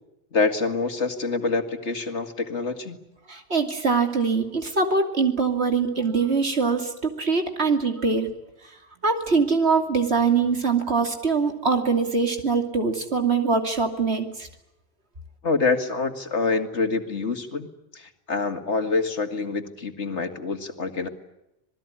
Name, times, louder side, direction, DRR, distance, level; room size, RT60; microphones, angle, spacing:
voice 1, 0.3-3.0 15.4-17.7 17.9-21.1, left 4 dB, 70° left, 6 dB, 2.4 m, -26 dB
voice 2, 3.3-8.3 9.0-14.5, right 4 dB, 60° right, 5 dB, 3.0 m, -23 dB
27.0 x 19.5 x 9.9 m, 0.88 s
omnidirectional pair, 1.2 m